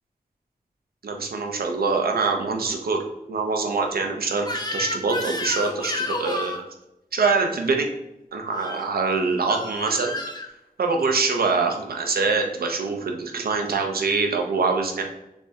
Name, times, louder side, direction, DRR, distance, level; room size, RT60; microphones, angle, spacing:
voice 1, 1.0-3.0 3.3-6.6 7.1-7.9 8.3-10.1 10.8-15.0, right 4 dB, 75° right, 3 dB, 0.6 m, -24 dB
Crying sobbing / Screech, 4.4-6.6 8.5-8.8 9.5-10.5, left 2 dB, 25° left, 0.6 m, -30 dB
3.3 x 3.2 x 2.8 m, 0.90 s
wide cardioid pair, 60°, 16 cm